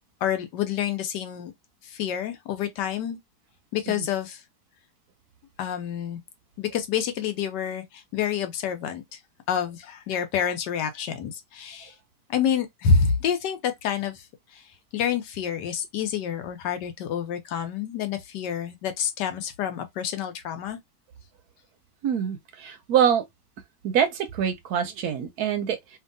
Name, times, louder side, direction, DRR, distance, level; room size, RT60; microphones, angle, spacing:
voice 1, 0.2-1.5 1.9-3.2 3.7-4.4 5.6-6.2 6.6-7.8 8.1-9.0 9.5-11.9 12.3-14.1 14.9-20.8, left 7 dB, 80° left, 1.3 m, -27 dB
voice 2, 22.0-23.2 23.8-26.0, right 8 dB, 70° right, 1.0 m, -25 dB
2.8 x 2.6 x 2.6 m
omnidirectional pair, 1.9 m